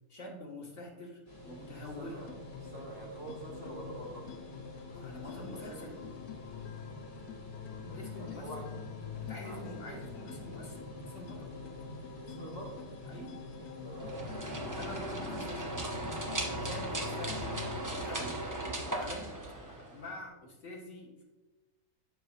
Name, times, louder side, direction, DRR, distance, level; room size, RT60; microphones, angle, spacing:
voice 1, 0.1-2.2 4.9-6.0 7.9-8.6 9.2-11.6 13.1-13.4 14.7-16.0 16.6-18.5 18.9-19.3 19.9-21.2, left 1 dB, 50° left, -2 dB, 1.9 m, -46 dB
sound 1, 1.3-17.8, right 1 dB, 25° left, 1.8 m, -49 dB
sound 2, 2.0-18.0, left 10 dB, 75° left, 1.0 m, -46 dB
voice 2, 2.0-2.3 2.6-4.4 5.2-5.8 7.9-8.7 9.4-9.9 12.2-12.9 13.8-14.2 16.7-17.0, right 1 dB, 50° right, -4 dB, 2.3 m, -46 dB
sound 3, 14.0-20.1, right 1 dB, 25° right, 0.4 m, -37 dB
12.0 x 4.9 x 2.5 m, 1.1 s
omnidirectional pair, 1.7 m